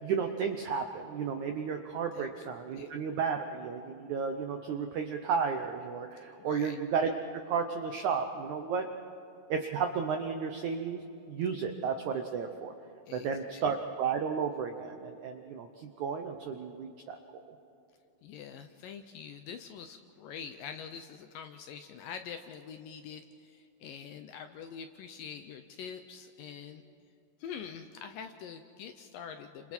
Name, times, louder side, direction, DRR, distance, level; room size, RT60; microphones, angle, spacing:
voice 1, 0.0-8.9 9.5-11.0 11.3-12.7 13.1-17.6, right 6 dB, 80° right, 5 dB, 1.7 m, -33 dB
voice 2, 6.4-6.8 13.1-13.6 18.2-26.8 27.4-29.7, left 7 dB, 75° left, 7 dB, 2.1 m, -45 dB
30.0 x 26.5 x 4.4 m, 2.6 s
omnidirectional pair, 4.7 m